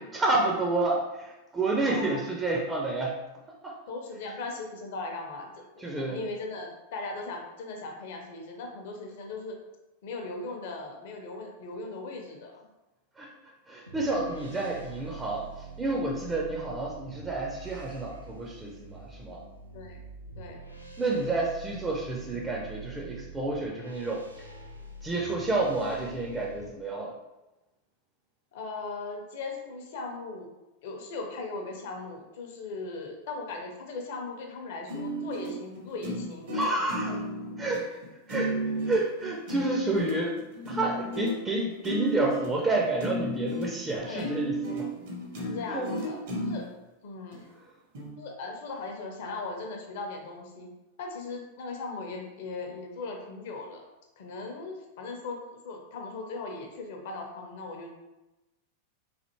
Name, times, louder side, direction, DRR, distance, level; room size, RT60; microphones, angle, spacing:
voice 1, 0.0-3.2 3.6-3.8 5.8-6.2 13.2-13.3 13.7-15.5 15.8-19.4 21.0-24.4 25.0-27.1 36.5-37.2 37.6-38.0 38.3-38.6 38.9-40.4 40.7-44.9 45.7-45.9, right 2 dB, 15° right, -1 dB, 0.4 m, -29 dB
voice 2, 1.8-2.2 3.9-9.6 10.0-12.7 16.5-16.6 19.7-20.0 20.4-20.6 28.5-30.5 30.8-36.6 37.1-37.6 43.9-44.4 45.4-46.2 46.5-46.7 47.0-47.5 48.2-50.7 51.0-53.9 54.2-55.4 55.6-57.9, left 3 dB, 55° left, 2 dB, 0.6 m, -38 dB
sound 1, 13.9-26.7, right 4 dB, 90° right, 0.4 m, -45 dB
sound 2, 34.9-46.7 47.3-47.4 47.9-48.1, equal, 55° right, 0.8 m, -33 dB
3.3 x 2.5 x 2.7 m, 1.0 s
figure-of-eight pair, 90°, 0 cm